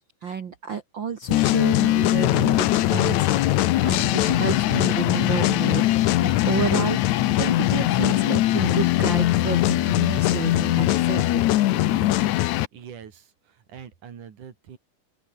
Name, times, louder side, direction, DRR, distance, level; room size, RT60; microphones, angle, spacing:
voice 1, 0.2-12.0, right 7 dB, 45° right, 1.8 m, -31 dB
sound 1, 1.3-12.7, left 15 dB, 70° left, 2.1 m, -21 dB
voice 2, 12.7-14.8, right 8 dB, 70° right, 4.2 m, -43 dB
open air
omnidirectional pair, 3.7 m